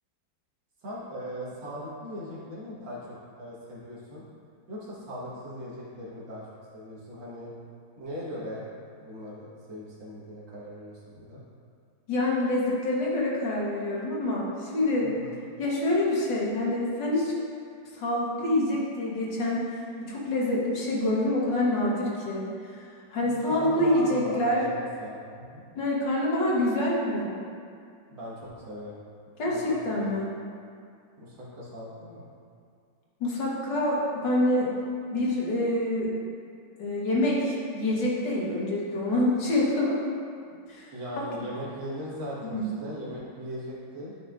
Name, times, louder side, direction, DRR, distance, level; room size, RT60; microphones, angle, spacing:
voice 1, 0.8-3.0 3.4-4.2 4.7-6.4 6.7-7.5 8.0-8.7 9.0-11.4 15.0-15.4 23.2-25.6 28.1-29.0 29.5-29.6 29.9-30.0 31.2-32.3 40.9-44.1, equal, 75° right, -7 dB, 2.3 m, -39 dB
voice 2, 12.1-15.1 15.6-17.3 17.9-22.8 23.1-24.6 25.8-27.4 29.4-30.3 33.2-34.7 35.1-36.1 36.8-39.9 40.7-40.9 41.3-41.4 42.5-42.7, left 1 dB, 70° left, -5 dB, 2.0 m, -26 dB
11.0 x 5.3 x 2.5 m, 2.3 s
omnidirectional pair, 2.0 m